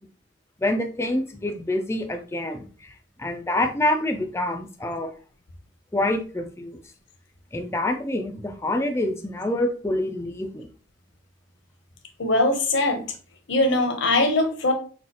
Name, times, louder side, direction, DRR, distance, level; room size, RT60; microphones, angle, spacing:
voice 1, 0.6-2.9 3.2-5.1 5.9-6.8 7.5-10.7, left 1 dB, 15° left, 5 dB, 0.4 m, -26 dB
voice 2, 12.2-13.0 13.5-14.7, left 2 dB, 65° left, 5 dB, 0.9 m, -21 dB
6.1 x 2.4 x 2.8 m, 0.39 s
head